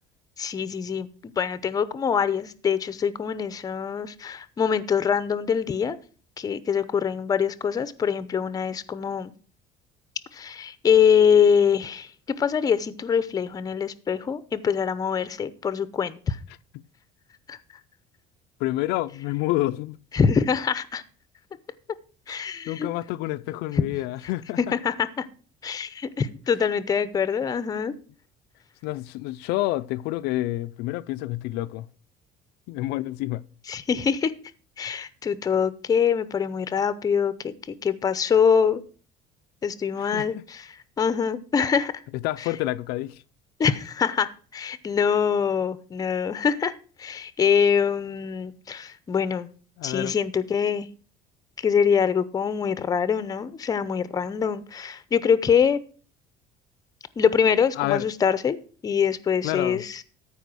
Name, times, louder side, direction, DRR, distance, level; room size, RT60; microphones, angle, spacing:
voice 1, 0.4-1.1 1.4-6.0 6.4-9.3 10.3-16.4 17.5-17.6 20.1-21.0 22.3-22.9 24.6-25.3 25.6-27.9 33.7-34.3 34.8-38.8 39.6-42.0 42.4-42.5 43.6-46.7 47.0-49.5 49.8-50.9 51.6-55.8 57.2-58.6 58.8-60.0, left 7 dB, 20° left, 0.7 m, -24 dB
voice 2, 18.6-20.0 22.3-24.6 28.8-31.9 32.7-33.4 40.0-40.4 42.2-43.2 49.8-50.1 57.8-58.1 59.4-59.8, left 17 dB, 80° left, 0.5 m, -28 dB
13.5 x 5.0 x 6.2 m
cardioid pair, 155°, 17 cm